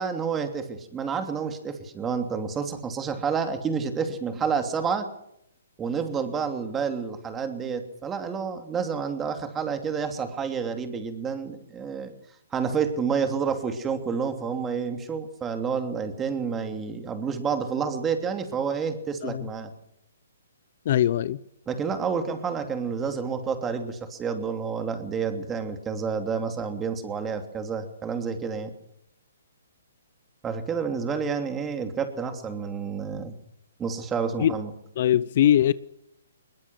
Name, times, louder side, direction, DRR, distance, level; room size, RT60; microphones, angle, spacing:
voice 1, 0.0-5.1 5.8-12.1 12.5-19.7 21.7-28.7 30.4-33.3 33.8-34.7, right 6 dB, 15° right, 7 dB, 2.9 m, -29 dB
voice 2, 20.8-21.4 34.4-34.6 35.0-35.7, left 11 dB, 50° left, 18 dB, 0.8 m, -21 dB
21.5 x 21.5 x 6.4 m, 0.76 s
hypercardioid pair, 150°, 0 cm